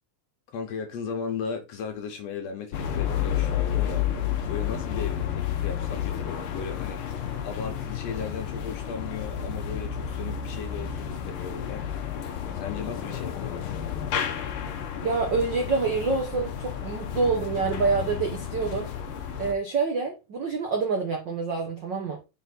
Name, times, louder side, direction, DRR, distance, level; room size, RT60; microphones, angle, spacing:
voice 1, 0.5-4.1 4.5-7.0 7.4-11.9 12.5-13.7, left 6 dB, 65° left, 2.0 m, -36 dB
sound 1, 2.7-19.5, left 9 dB, 80° left, 1.2 m, -31 dB
voice 2, 15.0-18.9 19.4-22.2, right 4 dB, 85° right, 1.0 m, -27 dB
6.1 x 4.0 x 4.0 m
omnidirectional pair, 3.6 m